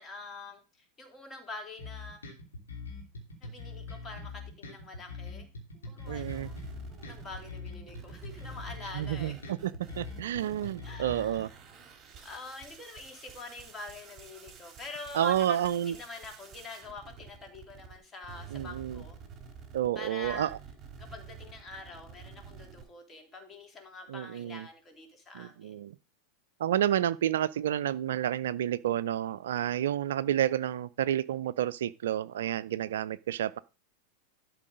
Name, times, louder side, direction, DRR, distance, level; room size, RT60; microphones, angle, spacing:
voice 1, 0.0-2.2 3.4-5.5 5.7-6.6 6.9-9.4 10.8-11.5 12.2-15.6 15.9-19.2 19.9-20.5 21.0-25.7, left 3 dB, 20° left, 2.7 m, -45 dB
sound 1, 1.8-11.4, left 3 dB, 75° left, 3.4 m, -43 dB
sound 2, 6.0-18.0 18.2-22.8, right 6 dB, 25° right, 3.5 m, -49 dB
voice 2, 6.1-6.5 8.9-9.7 10.0-11.5 15.1-16.0 18.5-19.0 19.7-20.6 24.1-24.7 25.3-26.0 26.6-33.6, right 11 dB, 60° right, 0.4 m, -30 dB
12.0 x 4.6 x 5.2 m
figure-of-eight pair, 90°, 0 cm